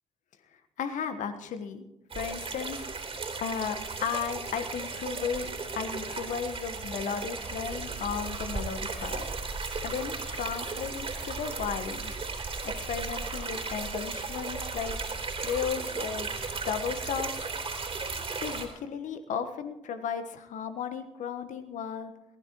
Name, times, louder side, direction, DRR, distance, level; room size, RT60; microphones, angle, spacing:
voice 1, 0.8-1.8 2.1-2.8 3.4-5.5 5.7-9.2 9.8-12.1 12.6-14.9 15.4-16.3 16.6-17.3 18.4-22.1, left 7 dB, 65° left, 9 dB, 1.3 m, -34 dB
sound 1, 2.1-18.7, right 4 dB, 45° right, 3.4 m, -35 dB
21.5 x 16.0 x 3.0 m, 0.96 s
hypercardioid pair, 40°, 14 cm